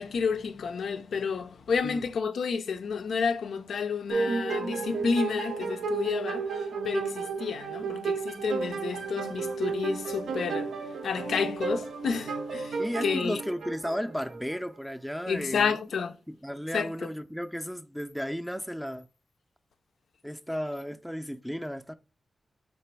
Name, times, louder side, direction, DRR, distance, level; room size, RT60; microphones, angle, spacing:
voice 1, 0.0-13.4 15.3-16.2 16.7-16.9, left 6 dB, 85° left, 0.3 m, -30 dB
sound 1, 4.1-14.6, right 4 dB, 85° right, 0.4 m, -32 dB
voice 2, 12.8-15.8 16.3-19.1 20.2-21.9, equal, ahead, 0.4 m, -34 dB
3.3 x 3.0 x 4.4 m
cardioid pair, 80°, 0 cm